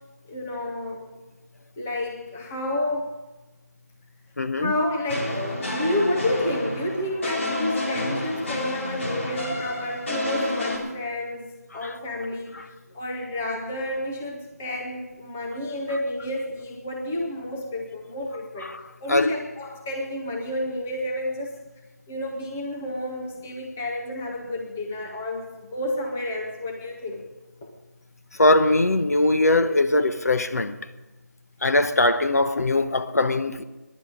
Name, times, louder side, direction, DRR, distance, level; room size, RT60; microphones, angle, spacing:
voice 1, 0.3-1.1 1.8-3.1 4.6-18.7 19.0-21.5 22.1-27.2 27.6-27.7, left 1 dB, 5° left, 0.4 m, -30 dB
voice 2, 4.4-4.7 11.8-11.9 18.7-18.8 19.1-19.3 28.4-30.8 31.6-33.6, left 2 dB, 65° left, 1.1 m, -21 dB
sound 1, 5.1-10.8, left 1 dB, 50° left, 3.7 m, -30 dB
23.5 x 11.0 x 5.1 m
figure-of-eight pair, 170°, 9 cm